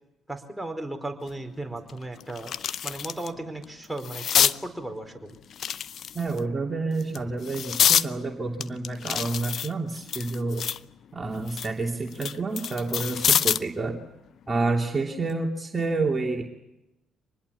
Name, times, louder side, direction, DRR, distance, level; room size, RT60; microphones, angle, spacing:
voice 1, 0.3-2.5 2.8-5.4, right 2 dB, 5° right, 4 dB, 4.6 m, -35 dB
sound 1, 1.3-1.4 1.9-3.3 3.6-4.6 5.5-6.4 7.0-8.1 8.6-10.9 11.3-13.7 15.1-15.3, left 9 dB, 60° left, 0.7 m, -26 dB
voice 2, 6.1-10.6 11.1-14.0 14.5-16.4, right 3 dB, 30° right, 0 dB, 2.9 m, -29 dB
25.5 x 20.5 x 7.2 m, 0.96 s
hypercardioid pair, 55°, 0 cm